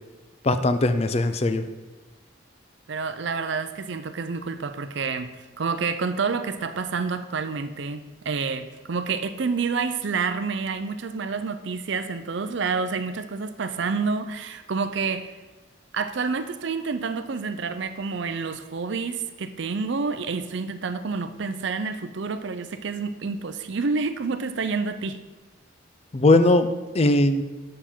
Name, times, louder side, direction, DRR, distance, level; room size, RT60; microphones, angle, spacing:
voice 1, 0.4-1.6 26.1-26.7 26.9-27.4, left 2 dB, 30° left, 10 dB, 0.4 m, -19 dB
voice 2, 2.9-15.3 15.9-25.2, right 4 dB, 65° right, 10 dB, 0.5 m, -28 dB
7.3 x 6.9 x 4.4 m, 1.2 s
head